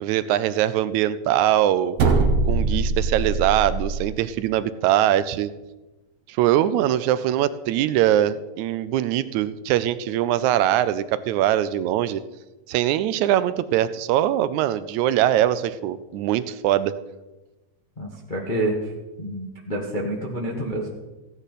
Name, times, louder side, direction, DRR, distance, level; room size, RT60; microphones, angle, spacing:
voice 1, 0.0-2.0 2.5-5.5 6.3-12.2 12.7-16.9, right 12 dB, 85° right, 14 dB, 1.9 m, -22 dB
sound 1, 2.0-4.0, right 3 dB, 60° right, 2.0 m, -22 dB
voice 2, 18.0-18.9 19.2-21.0, right 1 dB, 40° left, -2 dB, 0.7 m, -28 dB
15.5 x 10.0 x 4.1 m, 1.1 s
omnidirectional pair, 3.3 m